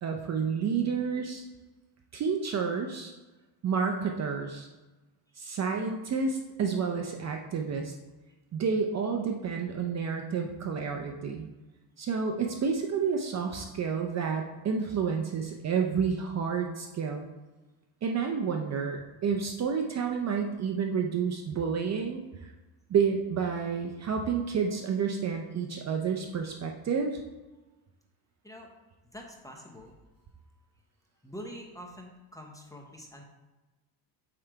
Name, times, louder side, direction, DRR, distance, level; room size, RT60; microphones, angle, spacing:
voice 1, 0.0-1.4 2.1-3.1 3.6-4.7 5.4-7.9 8.5-11.5 12.0-17.2 18.0-22.5 22.9-27.2, right 6 dB, 35° right, 2 dB, 0.5 m, -30 dB
voice 2, 29.1-29.9 31.2-33.2, equal, 5° left, 1 dB, 0.7 m, -45 dB
7.5 x 3.3 x 4.6 m, 1.1 s
cardioid pair, 140°, 50 cm